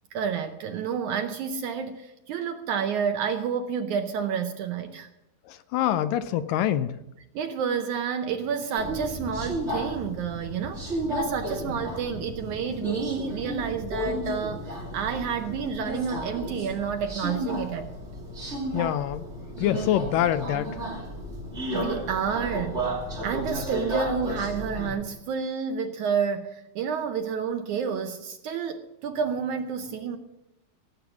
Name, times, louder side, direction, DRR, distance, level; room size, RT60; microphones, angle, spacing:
voice 1, 0.1-5.1 7.4-17.9 21.7-22.8 23.2-30.2, right 6 dB, 75° right, 6 dB, 1.9 m, -30 dB
voice 2, 5.5-7.0 18.7-19.2 19.6-20.7, left 11 dB, 80° left, 12 dB, 2.1 m, -25 dB
Subway metro underground, 8.8-24.9, equal, 20° right, 2.9 m, -33 dB
17.0 x 7.8 x 7.1 m, 0.91 s
omnidirectional pair, 4.1 m